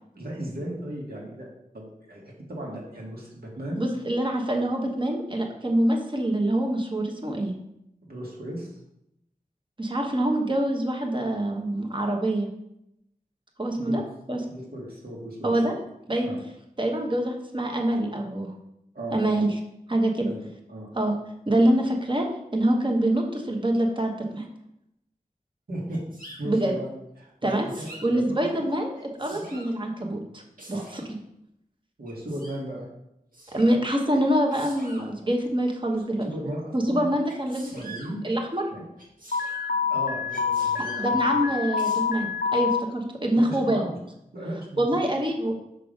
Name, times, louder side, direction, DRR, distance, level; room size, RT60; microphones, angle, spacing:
voice 1, 0.2-1.5 1.7-2.2 2.5-3.8 8.0-8.8 13.8-14.0 14.5-15.7 16.2-16.4 18.9-19.4 20.3-20.9 25.7-26.0 26.4-26.9 27.2-27.5 27.8-28.7 29.3-29.5 30.7-30.9 32.0-32.9 36.2-37.2 37.7-38.3 38.7-38.8 39.7-41.4 43.3-44.0 44.3-45.0, right 1 dB, 85° right, -3 dB, 1.8 m, -36 dB
voice 2, 3.7-7.5 9.8-12.5 13.6-14.0 14.3-14.4 15.4-15.7 16.1-16.3 16.8-18.5 19.1-19.5 19.9-20.3 20.9-21.2 21.5-22.3 22.5-24.5 26.4-26.7 27.4-27.7 28.0-28.9 29.2-30.4 30.7-31.2 33.5-36.3 36.7-37.9 38.2-38.6 41.0-43.8 44.8-45.6, right 1 dB, 35° right, 2 dB, 1.1 m, -25 dB
Sneeze, 25.9-26.4 27.4-28.1 28.9-29.7 30.6-31.1 32.1-32.6 33.3-33.8 34.5-35.1 37.2-38.1 39.0-39.7 40.3-41.1 41.8-42.0, right 2 dB, 65° right, 1.6 m, -45 dB
Alarm, 39.3-42.8, left 6 dB, 70° left, 0.6 m, -26 dB
6.1 x 3.4 x 5.2 m, 0.81 s
wide cardioid pair, 60°, 15 cm